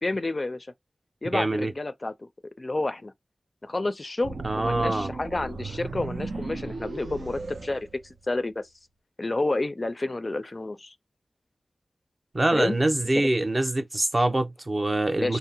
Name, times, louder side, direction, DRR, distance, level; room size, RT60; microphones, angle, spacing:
voice 1, 0.0-0.7 1.2-2.3 2.6-3.1 3.6-7.9 8.3-8.7 9.2-10.9 12.5-12.8 13.2-13.3 15.2-15.4, left 2 dB, 45° left, 0.4 m, -29 dB
voice 2, 1.3-1.7 4.4-5.1 12.3-15.4, right 2 dB, 40° right, 0.6 m, -24 dB
sound 1, 4.2-8.5, right 3 dB, 85° right, 0.4 m, -36 dB
2.7 x 2.0 x 2.8 m
wide cardioid pair, 50°, 0 cm